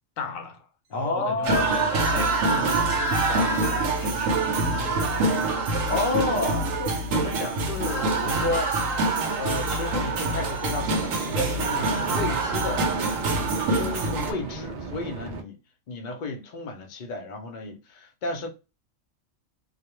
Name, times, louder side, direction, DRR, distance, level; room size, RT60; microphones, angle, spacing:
voice 1, 0.2-0.7 0.9-3.7 4.0-5.5, left 4 dB, 85° left, 1.0 m, -37 dB
voice 2, 0.9-2.3 5.9-9.1 9.4-12.9 13.7-15.6 15.9-18.5, left 3 dB, 50° left, 0.6 m, -32 dB
sound 1, 1.4-14.3, right 3 dB, 80° right, 1.0 m, -25 dB
sound 2, 10.8-15.4, right 4 dB, 60° right, 0.5 m, -37 dB
2.3 x 2.1 x 2.9 m
omnidirectional pair, 1.4 m